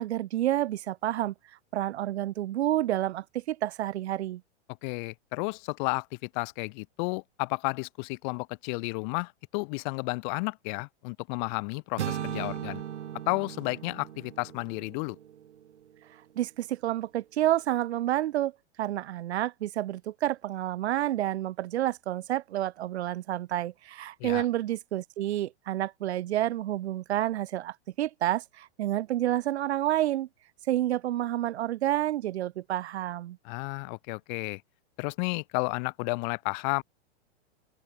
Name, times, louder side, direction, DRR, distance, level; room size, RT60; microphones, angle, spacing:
voice 1, 0.0-1.3 1.7-4.4 16.4-18.5 18.8-30.3 30.7-33.4, right 13 dB, 70° right, 1.2 m, -29 dB
voice 2, 4.8-12.8 13.3-15.2 24.2-24.5 33.4-34.6 35.0-36.8, left 33 dB, 45° left, 1.8 m, -32 dB
sound 1, 12.0-16.0, right 10 dB, 90° right, 1.3 m, -38 dB
open air
hypercardioid pair, 135°, 34 cm